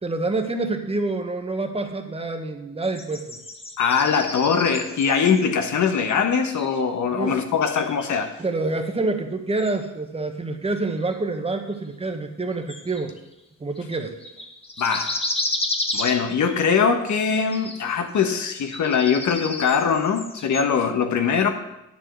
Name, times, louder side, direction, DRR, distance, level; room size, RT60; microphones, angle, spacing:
voice 1, 0.0-3.4 7.1-7.4 8.4-13.1 13.6-14.2, right 3 dB, 20° right, 5 dB, 1.3 m, -27 dB
sound 1, 2.8-5.4 6.1-6.2 6.5-7.0 7.6-8.9 9.6-9.7 11.1-11.2 11.7-11.8 12.7-13.3 13.8-16.7 17.2-17.9 18.3-20.7, left 2 dB, 20° left, 1.3 m, -32 dB
voice 2, 3.8-8.3 14.8-15.1 15.9-21.5, left 6 dB, 70° left, 6 dB, 1.3 m, -22 dB
9.7 x 7.5 x 6.3 m, 0.91 s
cardioid pair, 105°, 30 cm